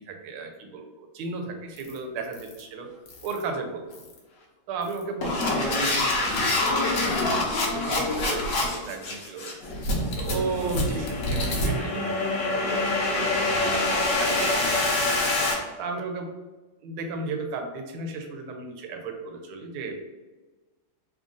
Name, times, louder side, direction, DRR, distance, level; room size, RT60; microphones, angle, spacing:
voice 1, 0.1-2.9 3.2-4.0 4.7-9.5 10.2-15.2 15.8-16.3 16.8-20.0, right 3 dB, 85° right, 4 dB, 1.5 m, -35 dB
sound 1, 1.8-2.0 2.3-2.6 3.1-3.4 3.9-4.2 4.8-15.5, left 2 dB, 55° left, 1.0 m, -26 dB
3.6 x 2.5 x 3.7 m, 1.2 s
omnidirectional pair, 2.2 m